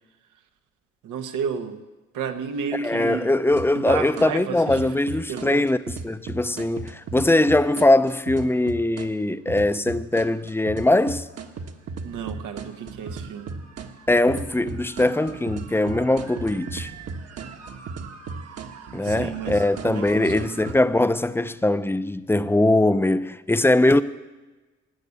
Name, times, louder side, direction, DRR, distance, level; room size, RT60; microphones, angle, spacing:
voice 1, 1.0-1.8 2.1-3.3 3.6-5.0 5.3-5.7 12.0-13.6 19.0-20.5, right 7 dB, 90° right, 1.3 m, -32 dB
voice 2, 2.8-5.8 6.0-11.2 14.1-16.9 18.9-24.0, left 2 dB, 10° left, 0.5 m, -21 dB
sound 1, 3.5-4.3 4.7-9.1 9.5-20.7, right 4 dB, 55° right, 1.4 m, -36 dB
18.5 x 6.5 x 8.3 m
cardioid pair, 90°, 30 cm